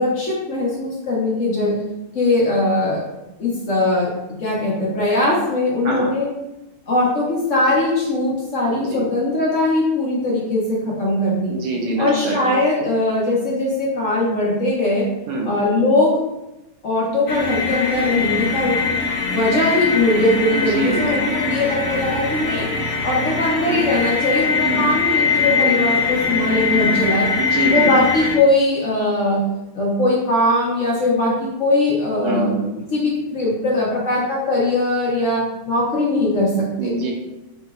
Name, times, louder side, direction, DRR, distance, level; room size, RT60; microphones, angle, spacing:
voice 1, 0.0-1.8 2.1-3.0 3.4-4.1 4.4-6.3 6.9-11.6 12.0-15.1 15.4-16.2 16.8-18.8 19.2-22.7 23.0-27.3 27.7-29.4 29.7-32.5 32.9-36.9, left 2 dB, 60° left, -5 dB, 0.8 m, -20 dB
voice 2, 11.5-12.6 15.3-15.5 20.5-21.3 24.7-24.8 27.4-27.9 32.2-32.7 36.8-37.1, right 2 dB, 85° right, 0 dB, 1.6 m, -24 dB
sound 1, 17.3-28.4, left 4 dB, 75° left, 1.5 m, -22 dB
5.5 x 2.9 x 2.4 m, 0.94 s
omnidirectional pair, 2.3 m